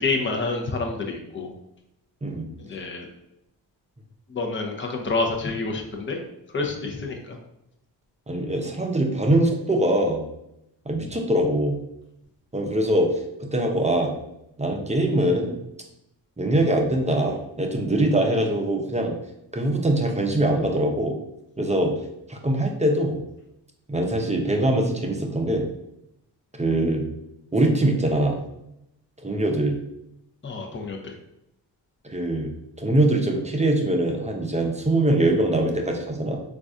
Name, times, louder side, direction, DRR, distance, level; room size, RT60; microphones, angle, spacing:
voice 1, 0.0-1.5 2.6-3.0 4.3-6.2 6.5-7.4 30.4-31.1, left 3 dB, 25° left, 2 dB, 0.7 m, -28 dB
voice 2, 8.3-10.2 10.9-11.8 12.5-13.1 13.4-14.1 14.6-15.6 16.4-19.1 19.5-21.1 21.6-21.9 22.3-23.2 23.9-25.7 26.6-27.0 27.5-28.4 29.2-29.8 32.1-32.5 32.8-36.4, right 1 dB, 15° right, 1 dB, 0.6 m, -22 dB
4.0 x 2.5 x 2.4 m, 0.83 s
supercardioid pair, 50°, 45 cm